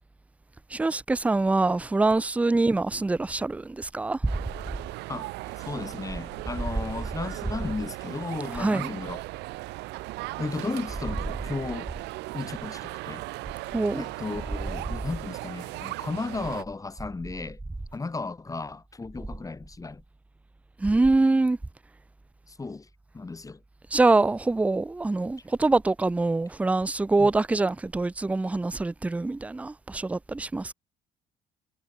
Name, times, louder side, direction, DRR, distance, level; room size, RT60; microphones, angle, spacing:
voice 1, 0.7-4.3 8.5-8.9 13.7-14.0 20.8-21.6 23.9-30.7, right 3 dB, 10° right, 0.4 m, -24 dB
sound 1, 4.3-16.6, right 20 dB, 90° right, 1.9 m, -37 dB
voice 2, 5.1-9.2 10.4-11.9 12.3-13.2 14.0-17.6 17.9-20.0 22.5-22.9 23.1-23.6 27.2-27.3, left 3 dB, 20° left, 5.6 m, -35 dB
cardioid pair, 110°, 17 cm